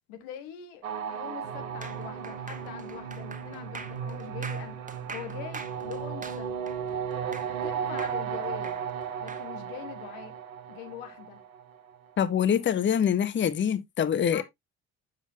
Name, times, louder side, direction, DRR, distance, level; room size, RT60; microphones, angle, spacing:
voice 1, 0.1-4.8 5.1-6.6 7.6-8.8 9.2-10.4 10.7-11.4 14.3-14.4, left 10 dB, 70° left, 1.5 m, -43 dB
sound 1, 0.8-12.0, right 7 dB, 80° right, 0.9 m, -35 dB
sound 2, 1.8-7.7 8.0-9.5, right 4 dB, 20° right, 1.5 m, -43 dB
voice 2, 12.2-14.4, left 8 dB, 30° left, 0.7 m, -25 dB
7.6 x 7.2 x 2.7 m
figure-of-eight pair, 45°, 41 cm